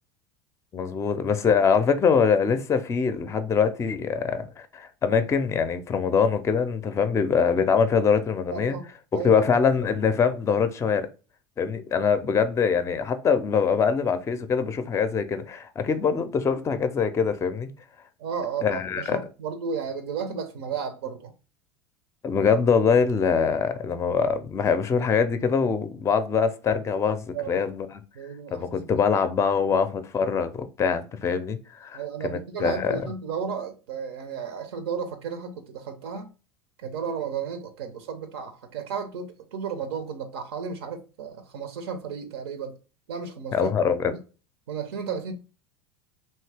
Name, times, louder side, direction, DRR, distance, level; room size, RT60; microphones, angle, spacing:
voice 1, 0.7-8.8 9.1-11.1 11.6-17.7 18.6-19.2 22.2-28.0 28.5-33.0 43.5-44.1, left 6 dB, 20° left, 0.4 m, -23 dB
voice 2, 8.5-8.9 9.1-9.4 18.2-21.3 27.3-27.6 28.2-29.1 31.9-36.3 36.8-42.7 43.1-43.7 44.7-45.3, right 6 dB, 75° right, 0.6 m, -33 dB
2.8 x 2.7 x 3.3 m
hypercardioid pair, 95°, 13 cm